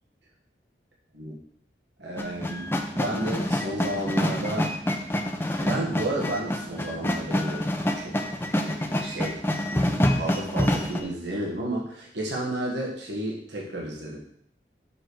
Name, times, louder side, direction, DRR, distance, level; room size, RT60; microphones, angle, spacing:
voice 1, 2.0-4.7 5.6-7.7 8.0-9.4 9.7-14.2, right 1 dB, 85° right, -2 dB, 1.7 m, -32 dB
sound 1, 2.2-11.0, left 1 dB, 15° left, 0.6 m, -27 dB
6.3 x 6.3 x 4.8 m, 0.67 s
head